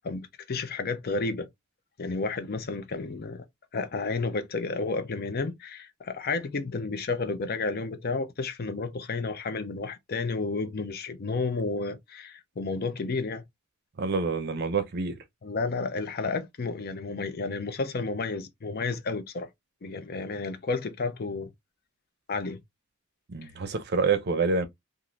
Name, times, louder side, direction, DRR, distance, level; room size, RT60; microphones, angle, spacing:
voice 1, 0.0-1.5 2.0-3.4 3.7-13.4 15.4-19.5 19.8-21.5 22.3-22.6 23.4-23.5, left 3 dB, 50° left, 0.5 m, -31 dB
voice 2, 14.0-15.1 23.3-24.7, right 4 dB, 50° right, 0.5 m, -27 dB
2.6 x 2.5 x 3.0 m
head